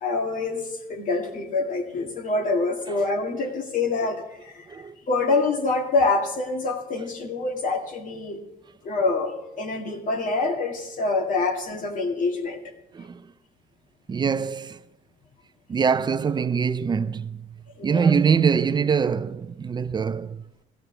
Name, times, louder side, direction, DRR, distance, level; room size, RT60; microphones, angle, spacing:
voice 1, 0.0-4.8 5.1-8.4 8.8-12.6 17.8-18.1, left 3 dB, 50° left, 2.0 m, -26 dB
voice 2, 12.9-13.3 14.1-14.8 15.7-17.5 17.8-20.4, right 6 dB, 25° right, 0.5 m, -23 dB
15.5 x 13.5 x 3.3 m
cardioid pair, 110°, 17 cm